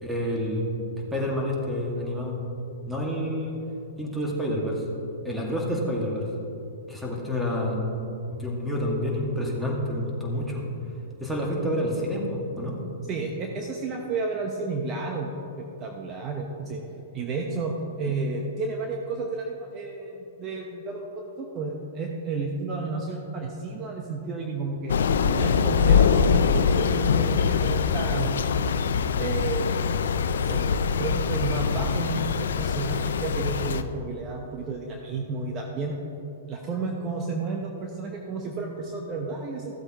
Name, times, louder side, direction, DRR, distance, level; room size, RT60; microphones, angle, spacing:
voice 1, 0.0-0.7 1.1-2.4 2.9-3.6 4.0-4.8 5.2-6.3 6.9-7.8 8.3-10.6 11.2-12.8, equal, 5° right, -2 dB, 2.0 m, -28 dB
voice 2, 13.1-16.8 17.1-24.9 25.3-28.4 29.2-29.8 30.4-35.9 36.5-39.8, right 3 dB, 30° right, 1 dB, 1.0 m, -32 dB
Thunder / Rain, 24.9-33.8, left 6 dB, 75° left, 0.5 m, -23 dB
15.0 x 7.9 x 3.0 m, 3.0 s
hypercardioid pair, 125°, 0 cm